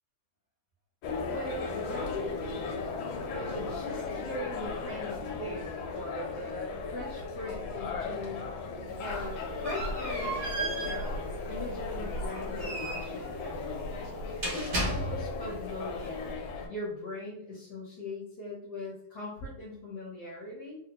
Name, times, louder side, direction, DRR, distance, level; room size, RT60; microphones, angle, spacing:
sound 1, 1.0-16.7, left 3 dB, 80° left, 1.4 m, -36 dB
voice 1, 1.3-2.8 3.3-8.4 9.0-13.9 14.5-16.4 16.7-20.8, left 1 dB, 60° left, -6 dB, 1.3 m, -40 dB
sound 2, 8.9-15.5, right 2 dB, 60° right, 0.5 m, -36 dB
3.6 x 2.1 x 2.9 m, 0.72 s
omnidirectional pair, 2.2 m